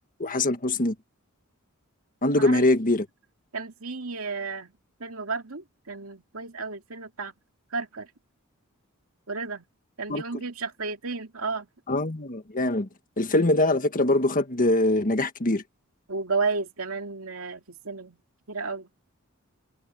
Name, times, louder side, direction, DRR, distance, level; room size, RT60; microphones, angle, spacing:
voice 1, 0.2-0.9 2.2-3.0 10.1-10.2 11.9-12.9 13.2-15.6, left 2 dB, 40° left, 1.7 m, -23 dB
voice 2, 3.5-4.7 5.0-7.3 7.7-8.1 9.3-9.6 10.0-11.7 16.1-18.2 18.5-18.9, right 4 dB, 75° right, 2.5 m, -32 dB
head